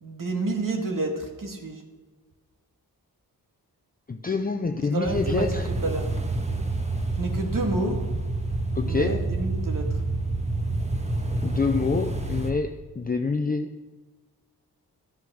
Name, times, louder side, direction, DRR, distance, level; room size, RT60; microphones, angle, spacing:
voice 1, 0.0-1.8 4.9-6.1 7.2-8.0 8.8-9.9, right 2 dB, 55° right, 3 dB, 2.3 m, -29 dB
voice 2, 4.1-5.7 8.8-9.1 11.4-12.7 13.0-13.7, left 4 dB, 25° left, 6 dB, 0.6 m, -26 dB
sound 1, 5.0-12.5, right 2 dB, 15° right, 1.4 m, -28 dB
13.0 x 9.3 x 6.3 m, 1.3 s
wide cardioid pair, 85°, 39 cm